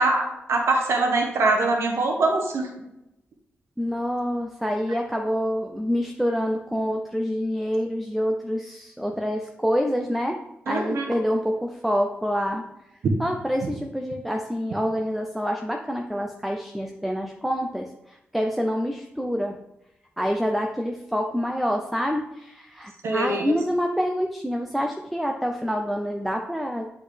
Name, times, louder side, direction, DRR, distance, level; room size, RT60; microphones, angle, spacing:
voice 1, 0.0-2.7 10.7-11.1 13.0-13.1 13.6-13.7 23.0-23.5, right 2 dB, 80° right, 2 dB, 1.1 m, -23 dB
voice 2, 3.8-10.4 10.7-12.6 13.2-19.6 20.2-26.9, equal, ahead, 2 dB, 0.5 m, -27 dB
8.2 x 4.2 x 3.3 m, 0.89 s
cardioid pair, 95°, 5 cm